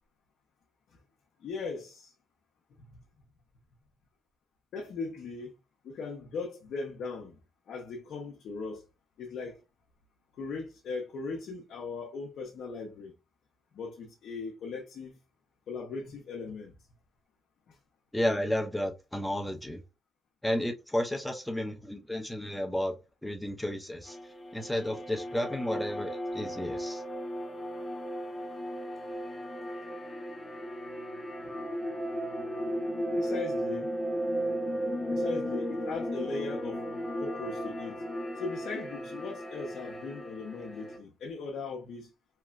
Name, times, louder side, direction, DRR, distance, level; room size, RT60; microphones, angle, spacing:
voice 1, 1.4-2.1 2.8-3.0 4.7-5.5 5.8-7.4 7.7-8.8 9.2-9.6 10.3-13.1 13.7-15.2 15.7-16.7 17.7-17.8 33.2-33.9 35.1-36.8 37.2-38.0 38.4-42.1, left 4 dB, 70° left, 0.6 m, -39 dB
voice 2, 18.1-19.8 20.4-22.9 23.2-24.2 24.5-27.0, left 1 dB, 5° left, 0.5 m, -32 dB
sound 1, 24.1-41.0, equal, 35° left, 0.9 m, -35 dB
2.9 x 2.2 x 2.4 m
cardioid pair, 95°, 0 cm